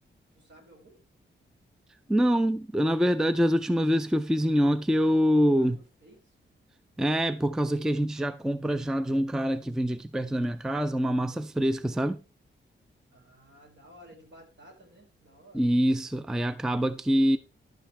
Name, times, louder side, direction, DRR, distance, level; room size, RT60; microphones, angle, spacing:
voice 1, 0.3-1.0 5.6-5.7 6.0-6.2 11.2-11.5 13.1-15.7, equal, 65° right, 5.2 m, -54 dB
voice 2, 2.1-5.8 7.0-12.2 15.5-17.4, equal, 5° right, 0.4 m, -25 dB
11.5 x 8.6 x 3.3 m
wide cardioid pair, 170°, 20 cm